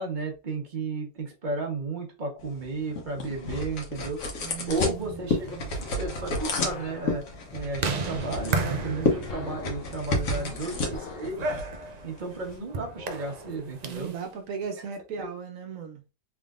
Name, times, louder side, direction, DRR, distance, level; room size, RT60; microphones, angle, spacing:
voice 1, 0.0-4.2 4.7-7.2 7.5-11.5 12.0-14.1, right 3 dB, 40° right, 1.3 m, -33 dB
sound 1, 2.4-12.6, left 2 dB, 85° left, 1.4 m, -32 dB
voice 2, 4.4-5.9 10.3-10.8 13.8-16.0, right 6 dB, 90° right, 1.1 m, -38 dB
sound 2, 4.7-11.4, left 4 dB, 55° left, 0.8 m, -41 dB
sound 3, 5.1-14.2, right 3 dB, 65° right, 0.4 m, -35 dB
3.5 x 3.5 x 2.5 m
omnidirectional pair, 1.4 m